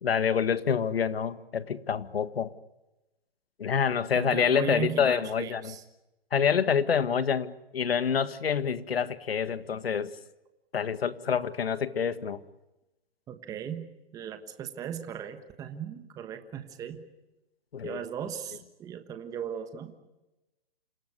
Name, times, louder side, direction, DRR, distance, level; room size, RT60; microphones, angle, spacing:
voice 1, 0.0-2.5 3.6-5.7 6.3-10.1 10.7-12.4 17.7-18.0, left 7 dB, 80° left, 14 dB, 1.8 m, -27 dB
voice 2, 4.1-5.8 13.3-13.9 14.1-17.0 17.8-19.9, right 9 dB, 10° right, 8 dB, 1.3 m, -37 dB
28.0 x 16.5 x 9.7 m, 0.99 s
hypercardioid pair, 155°, 30 cm